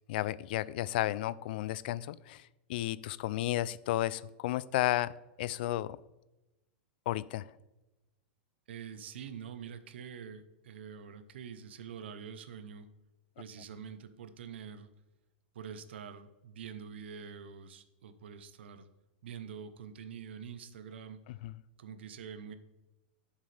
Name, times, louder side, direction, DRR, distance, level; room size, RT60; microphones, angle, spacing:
voice 1, 0.1-5.1 5.4-6.0 7.1-7.5 21.3-21.6, left 15 dB, 65° left, 19 dB, 0.4 m, -33 dB
voice 2, 8.7-12.9 13.4-14.9 15.5-18.9 19.2-21.2 21.8-22.5, right 7 dB, 85° right, 11 dB, 0.9 m, -46 dB
10.5 x 7.3 x 3.4 m, 1.0 s
supercardioid pair, 135°, 6 cm